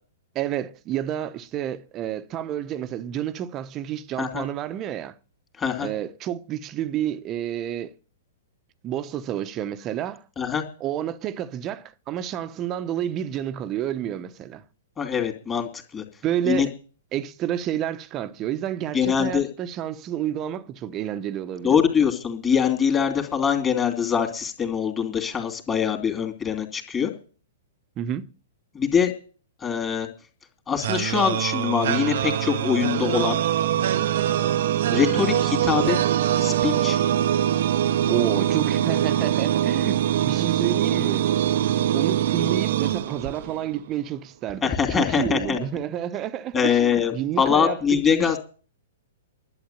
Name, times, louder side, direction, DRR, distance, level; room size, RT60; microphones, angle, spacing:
voice 1, 0.3-5.1 5.8-7.9 8.8-10.2 10.8-14.6 16.2-16.7 17.1-21.8 28.0-28.3 38.1-41.3 41.9-48.4, right 11 dB, 30° right, 1.0 m, -30 dB
voice 2, 5.6-5.9 10.4-10.6 15.0-15.7 15.9-16.0 16.5-16.7 18.9-19.5 21.6-27.1 28.7-29.1 29.6-30.1 30.7-33.4 34.9-36.0 36.4-37.0 44.6-45.6 46.5-48.4, left 7 dB, 20° left, 2.8 m, -23 dB
sound 1, 30.8-43.7, right 11 dB, 60° right, 0.7 m, -23 dB
11.5 x 8.2 x 9.2 m
figure-of-eight pair, 110°, 0 cm